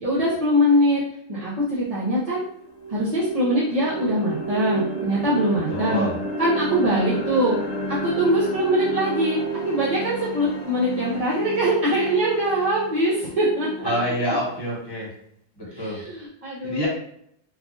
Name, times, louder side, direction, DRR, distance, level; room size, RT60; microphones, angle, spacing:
voice 1, 0.0-1.0 1.3-2.4 2.9-6.0 6.4-7.6 8.0-13.9 15.7-16.9, equal, 35° right, -9 dB, 0.8 m, -22 dB
sound 1, 1.8-1.9 2.4-14.4, right 2 dB, 50° left, 0.5 m, -31 dB
voice 2, 5.7-6.1 13.8-15.1 15.6-16.0 16.6-16.9, equal, 20° left, -6 dB, 1.1 m, -27 dB
3.3 x 2.4 x 2.5 m, 0.69 s
omnidirectional pair, 1.2 m